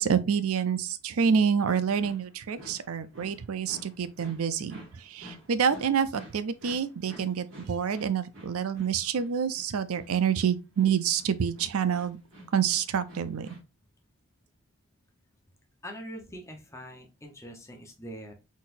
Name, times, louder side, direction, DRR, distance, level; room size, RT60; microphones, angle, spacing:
voice 1, 0.0-12.2 12.5-13.5, right 7 dB, 80° right, 0.5 m, -27 dB
sound 1, 1.8-13.6, right 1 dB, 65° right, 2.1 m, -50 dB
voice 2, 15.8-18.3, equal, 15° left, 0.8 m, -43 dB
4.1 x 4.1 x 2.5 m
head